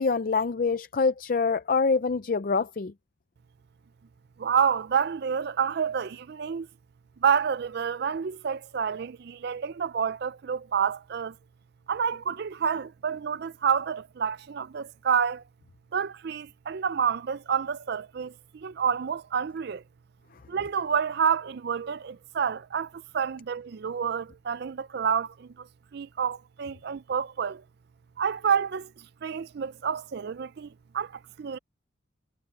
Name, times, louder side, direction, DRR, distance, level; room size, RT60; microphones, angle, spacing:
voice 1, 0.0-2.9, left 4 dB, 45° left, 0.4 m, -25 dB
voice 2, 4.4-6.7 7.2-11.3 11.9-15.4 15.9-19.8 20.5-25.7 25.9-27.6 28.2-31.6, right 7 dB, 50° right, 0.4 m, -29 dB
head